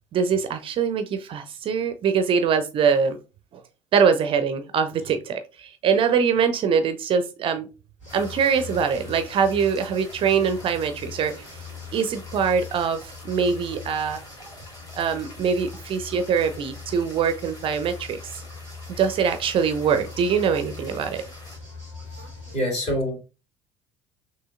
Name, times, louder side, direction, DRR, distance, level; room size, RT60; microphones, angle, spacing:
voice 1, 0.1-3.2 3.9-7.7 8.1-11.6 11.9-13.0 13.2-14.2 15.0-18.4 19.0-21.2, right 6 dB, 35° right, 0.4 m, -23 dB
sound 1, 8.0-22.6, left 5 dB, 80° left, 1.8 m, -41 dB
sound 2, 8.1-21.6, left 1 dB, 25° left, 1.6 m, -47 dB
voice 2, 21.7-23.2, equal, 45° left, 2.3 m, -28 dB
6.1 x 2.7 x 2.4 m
figure-of-eight pair, 60°, 15 cm